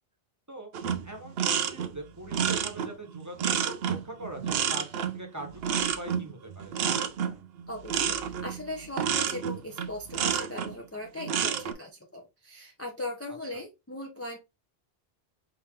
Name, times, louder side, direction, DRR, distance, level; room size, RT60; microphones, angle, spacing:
sound 1, 0.7-10.7 11.2-11.7, right 8 dB, 80° right, 0.8 m, -29 dB
voice 1, 1.0-3.5 3.8-7.4 13.5-13.6, right 1 dB, 20° right, 3 dB, 1.1 m, -42 dB
voice 2, 7.7-8.2 8.4-14.4, left 1 dB, 15° left, 0 dB, 0.6 m, -39 dB
4.7 x 2.8 x 3.6 m, 0.25 s
omnidirectional pair, 1.0 m